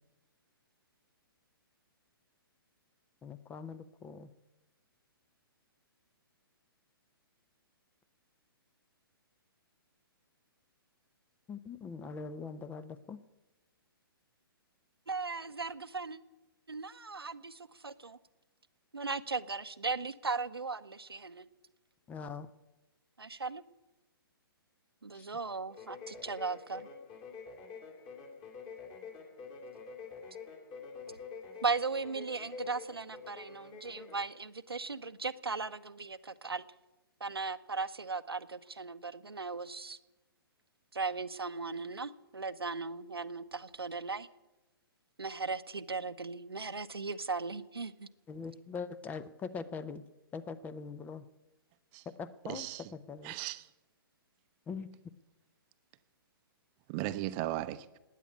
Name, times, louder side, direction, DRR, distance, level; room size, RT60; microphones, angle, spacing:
voice 1, 3.2-4.3 11.5-13.2 22.1-22.5 25.1-25.3 48.3-50.1 50.3-51.3 52.2-52.7 52.9-53.3 54.7-54.9, left 5 dB, 15° left, 0.6 m, -42 dB
voice 2, 15.1-16.2 16.7-18.2 18.9-21.4 23.2-23.6 25.0-26.9 31.1-31.2 31.6-36.6 37.2-40.0 40.9-44.3 45.2-48.1, right 4 dB, 80° right, 0.8 m, -37 dB
sound 1, 25.7-34.3, left 5 dB, 30° left, 2.7 m, -47 dB
voice 3, 52.4-52.9 53.2-53.7 56.9-58.0, right 15 dB, 30° right, 0.7 m, -37 dB
16.5 x 10.0 x 8.4 m
figure-of-eight pair, 125°, 13 cm